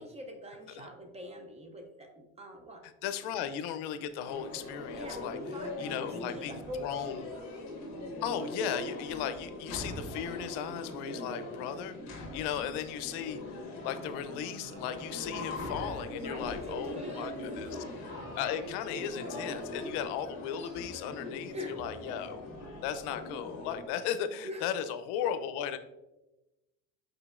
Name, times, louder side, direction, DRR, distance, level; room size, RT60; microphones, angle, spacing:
voice 1, 0.0-2.8 4.9-7.4 16.1-17.3 21.5-21.8 24.4-24.7, equal, 15° right, 4 dB, 0.4 m, -44 dB
voice 2, 2.8-5.4 5.8-7.3 8.2-17.8 18.4-22.4 22.8-25.8, left 9 dB, 85° left, 11 dB, 0.5 m, -36 dB
sound 1, 4.2-23.9, left 2 dB, 45° left, 1.3 m, -41 dB
sound 2, 13.7-16.5 17.5-20.1, right 2 dB, 85° right, 1.2 m, -56 dB
5.0 x 4.4 x 2.4 m, 0.99 s
cardioid pair, 140°, 39 cm